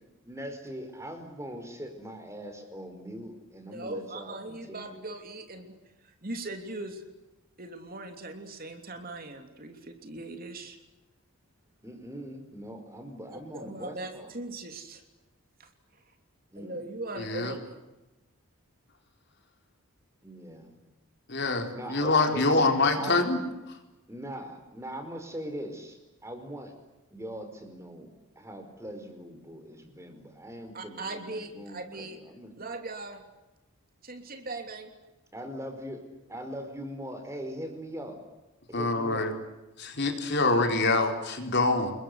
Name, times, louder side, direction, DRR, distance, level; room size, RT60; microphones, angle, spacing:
voice 1, 0.2-5.0 11.8-14.3 16.5-16.8 20.2-20.8 21.7-23.2 24.1-26.7 27.1-32.5 35.3-36.0 36.3-38.2 38.7-39.3, equal, 15° right, 6 dB, 4.9 m, -41 dB
voice 2, 3.6-5.8 6.0-7.0 7.6-10.8 13.3-15.0 15.6-15.7 16.5-17.7 30.7-32.2 32.6-33.2 34.0-34.9, right 2 dB, 40° right, 6 dB, 3.1 m, -39 dB
voice 3, 17.2-17.5 21.3-23.4 38.7-39.3 39.8-41.9, left 3 dB, 50° left, 4 dB, 4.2 m, -25 dB
28.5 x 22.0 x 8.0 m, 1.0 s
head